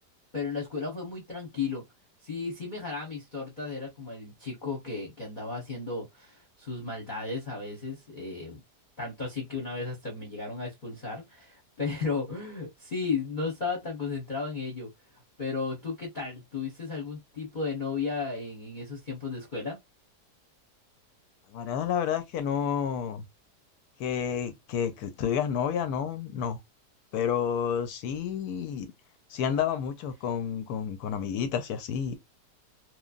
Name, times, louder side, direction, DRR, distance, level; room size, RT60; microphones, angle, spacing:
voice 1, 0.3-1.8 2.2-8.6 9.0-14.9 15.4-19.8, left 4 dB, 40° left, 0.8 m, -34 dB
voice 2, 21.5-23.2 24.0-26.6 27.1-28.9 29.3-32.2, left 8 dB, 70° left, 1.0 m, -30 dB
3.1 x 2.2 x 2.3 m
omnidirectional pair, 1.8 m